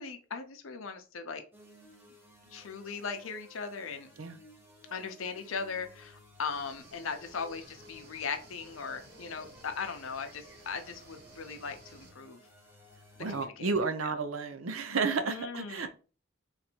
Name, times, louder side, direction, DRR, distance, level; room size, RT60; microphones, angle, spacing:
voice 1, 0.0-1.4 2.5-4.1 4.9-12.4 13.3-13.7 14.0-14.1 15.2-15.9, left 5 dB, 90° left, 6 dB, 0.7 m, -39 dB
sound 1, 1.5-13.5, left 1 dB, 10° right, 1.1 m, -57 dB
sound 2, 6.5-12.1, right 2 dB, 50° right, 1.2 m, -56 dB
voice 2, 13.2-15.9, right 4 dB, 85° right, 8 dB, 0.6 m, -32 dB
3.9 x 2.6 x 4.4 m, 0.37 s
head